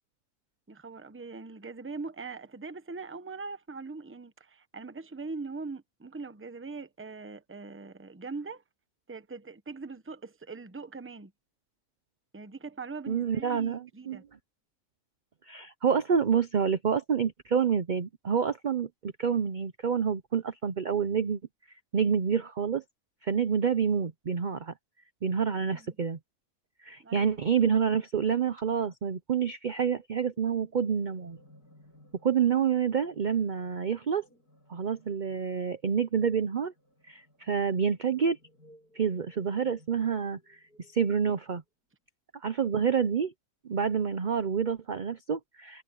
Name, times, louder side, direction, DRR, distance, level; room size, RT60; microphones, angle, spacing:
voice 1, 0.7-8.6 9.1-11.3 12.3-14.3 25.7-26.0 27.0-27.4, right 4 dB, 10° right, 0.7 m, -41 dB
voice 2, 13.1-14.2 15.5-21.4 21.9-22.8 23.2-24.7 25.2-26.2 26.8-31.4 32.2-34.2 34.7-36.7 37.1-38.4 38.9-40.6 40.9-41.6 42.4-43.3 43.6-45.8, right 7 dB, 45° right, 0.6 m, -28 dB
sound 1, 30.4-41.7, left 1 dB, 85° left, 8.4 m, -61 dB
omnidirectional pair, 1.6 m